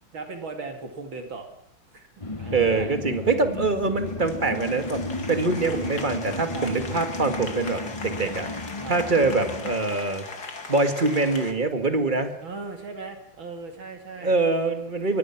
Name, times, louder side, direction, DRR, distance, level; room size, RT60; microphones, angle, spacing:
voice 1, 0.1-1.5 1.9-2.1 2.4-2.9 6.5-6.7 8.8-9.0 12.4-14.4, right 4 dB, 65° right, 5 dB, 3.2 m, -38 dB
sound 1, 2.2-9.8, left 2 dB, 20° left, 0.9 m, -34 dB
Applause, 2.4-11.5, left 3 dB, 45° left, 2.9 m, -39 dB
voice 2, 2.5-5.0 5.3-8.5 8.9-10.2 10.7-12.3 14.2-15.2, right 3 dB, 25° right, 7 dB, 2.1 m, -24 dB
25.0 x 22.5 x 6.0 m, 0.73 s
omnidirectional pair, 2.4 m